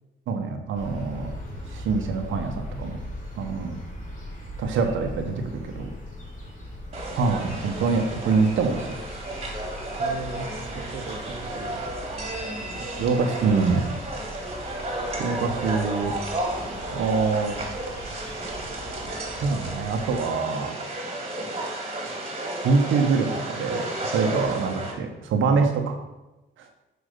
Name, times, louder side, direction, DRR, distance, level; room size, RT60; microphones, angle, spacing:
voice 1, 0.3-1.3 1.7-3.0 3.4-3.8 4.6-5.9 7.1-8.9 13.0-13.9 14.7-14.8 15.2-16.1 16.9-17.6 19.4-20.7 22.6-23.9 24.1-26.0, right 4 dB, 80° right, 4 dB, 1.0 m, -24 dB
sound 1, 0.7-20.2, left 1 dB, 45° left, 2.9 m, -40 dB
sound 2, 6.9-24.9, right 1 dB, 30° right, 2.2 m, -33 dB
voice 2, 10.0-12.0 12.7-13.3, right 3 dB, 45° right, 4 dB, 1.1 m, -39 dB
6.5 x 5.0 x 6.6 m, 1.0 s
cardioid pair, 90°, 20 cm